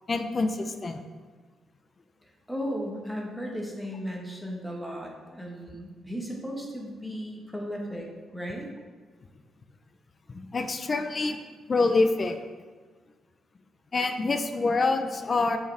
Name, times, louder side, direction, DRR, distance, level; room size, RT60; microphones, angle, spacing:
voice 1, 0.1-1.0 10.3-11.4 11.7-12.4 13.9-15.6, left 3 dB, 35° left, 7 dB, 0.4 m, -26 dB
voice 2, 2.2-8.1 8.3-8.7, equal, ahead, -1 dB, 1.2 m, -35 dB
7.6 x 4.8 x 3.3 m, 1.4 s
cardioid pair, 120°, 0 cm